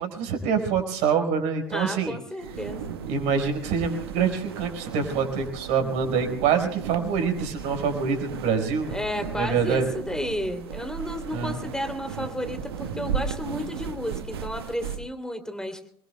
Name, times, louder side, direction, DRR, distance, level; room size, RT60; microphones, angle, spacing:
voice 1, 0.0-2.2 3.1-8.9 9.4-9.9 11.3-11.6, right 6 dB, 60° right, 6 dB, 4.9 m, -25 dB
voice 2, 1.7-3.0 8.9-15.8, left 1 dB, 5° left, 6 dB, 3.0 m, -32 dB
sound 1, 2.4-15.0, right 7 dB, 80° right, 1.5 m, -36 dB
27.5 x 22.0 x 2.3 m, 0.65 s
hypercardioid pair, 75°, 13 cm